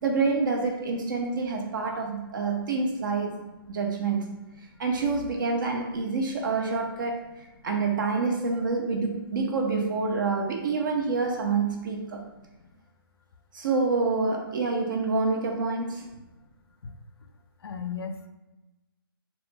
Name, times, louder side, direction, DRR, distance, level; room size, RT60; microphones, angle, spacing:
voice 1, 0.0-3.4 3.7-4.3 4.8-7.2 7.6-12.2 13.5-16.1, right 4 dB, 55° right, 2 dB, 0.4 m, -27 dB
voice 2, 17.6-18.3, left 6 dB, 90° left, 8 dB, 0.4 m, -36 dB
2.3 x 2.0 x 3.3 m, 1.0 s
hypercardioid pair, 145°, 13 cm